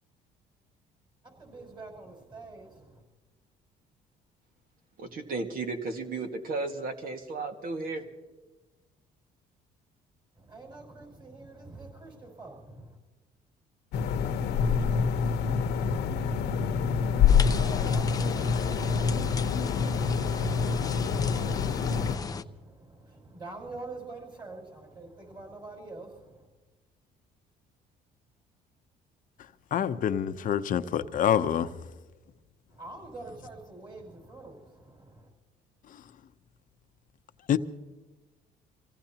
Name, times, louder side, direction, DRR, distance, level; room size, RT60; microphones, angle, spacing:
voice 1, 1.2-3.0 10.3-13.0 17.5-26.5 32.7-35.3, right 3 dB, 25° right, 1 dB, 5.9 m, -46 dB
voice 2, 5.0-8.1, right 3 dB, 55° right, 4 dB, 1.9 m, -34 dB
sound 1, 13.9-22.2, left 6 dB, 80° left, 1.1 m, -26 dB
sound 2, 17.3-22.4, left 5 dB, 20° left, 0.6 m, -36 dB
voice 3, 29.7-31.7 37.5-37.6, left 9 dB, 50° left, 10 dB, 0.8 m, -26 dB
26.5 x 17.0 x 2.9 m, 1.2 s
cardioid pair, 110°, 17 cm